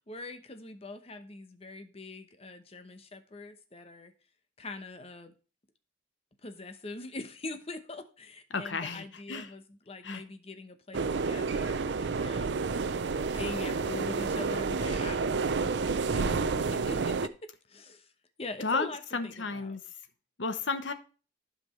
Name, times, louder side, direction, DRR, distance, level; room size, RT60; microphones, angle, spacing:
voice 1, 0.1-4.1 4.6-5.3 6.4-12.6 13.2-16.4 16.7-17.1 17.7-18.1 18.4-19.0 19.4-19.8, left 2 dB, 35° left, 0.9 m, -43 dB
voice 2, 8.5-9.5 10.0-10.2 16.2-17.1 18.6-19.9 20.4-20.9, left 4 dB, 85° left, 1.0 m, -34 dB
sound 1, 10.9-17.3, right 4 dB, 70° right, 0.5 m, -30 dB
11.5 x 5.2 x 3.1 m
head